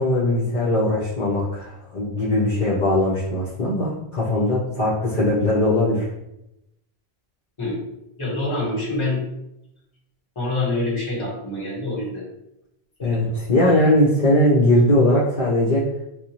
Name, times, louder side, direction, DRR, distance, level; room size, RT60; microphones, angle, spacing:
voice 1, 0.0-6.1 13.0-15.8, left 1 dB, 55° left, -8 dB, 1.0 m, -20 dB
voice 2, 8.2-9.2 10.3-12.3 13.0-13.3, left 2 dB, 30° left, -5 dB, 1.1 m, -26 dB
4.6 x 2.1 x 2.8 m, 0.86 s
omnidirectional pair, 1.1 m